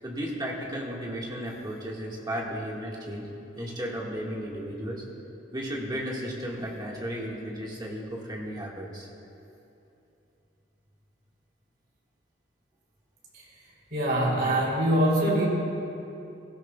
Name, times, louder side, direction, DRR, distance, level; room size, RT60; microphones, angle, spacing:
voice 1, 0.0-3.3 3.6-5.0 5.5-9.1, equal, 25° right, -3 dB, 1.7 m, -34 dB
voice 2, 13.9-15.5, right 1 dB, 55° right, -4 dB, 3.1 m, -23 dB
17.0 x 16.0 x 2.3 m, 2.8 s
head